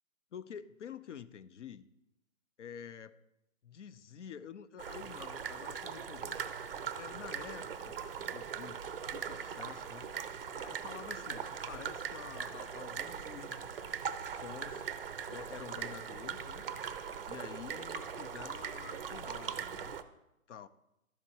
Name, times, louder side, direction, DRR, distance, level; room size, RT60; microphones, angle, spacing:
voice 1, 0.3-1.9 2.6-3.1 3.6-6.4 6.9-8.8 9.1-10.1 10.5-13.8 14.3-14.8 15.3-16.7 17.3-20.0 20.5-20.7, left 8 dB, 60° left, 13 dB, 0.6 m, -48 dB
sound 1, 4.8-20.0, right 7 dB, 45° right, 0.5 m, -40 dB
12.0 x 4.2 x 2.8 m, 0.88 s
hypercardioid pair, 145°, 42 cm